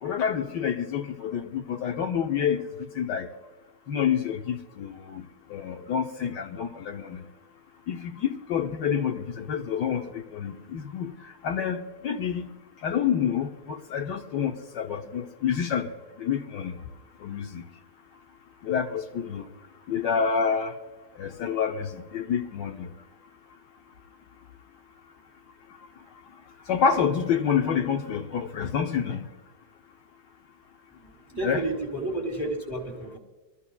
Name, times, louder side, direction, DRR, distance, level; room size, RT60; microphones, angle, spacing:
voice 1, 0.0-2.7 2.9-3.3 3.9-7.2 7.9-12.5 12.8-15.9 16.2-16.8 17.2-17.6 18.6-19.4 19.9-20.7 21.1-22.9 26.7-29.3 31.4-31.7, left 7 dB, 75° left, 1.5 m, -28 dB
voice 2, 31.3-33.2, right 2 dB, 15° left, 2.3 m, -31 dB
24.5 x 13.5 x 2.3 m
omnidirectional pair, 1.9 m